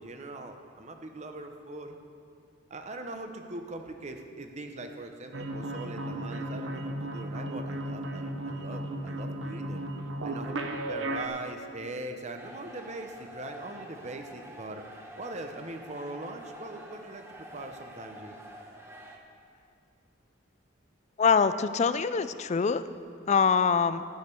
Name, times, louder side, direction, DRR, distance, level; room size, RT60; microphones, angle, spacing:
voice 1, 0.0-2.0 2.7-9.9 10.2-14.8 15.2-18.4, right 2 dB, 35° right, 5 dB, 0.8 m, -41 dB
sound 1, 5.3-11.3, right 1 dB, 75° right, 0.9 m, -35 dB
sound 2, 12.3-19.2, equal, 15° right, 1.0 m, -47 dB
voice 2, 21.2-22.8 23.3-24.0, left 5 dB, 35° left, 13 dB, 0.4 m, -24 dB
12.0 x 6.6 x 8.3 m, 2.4 s
head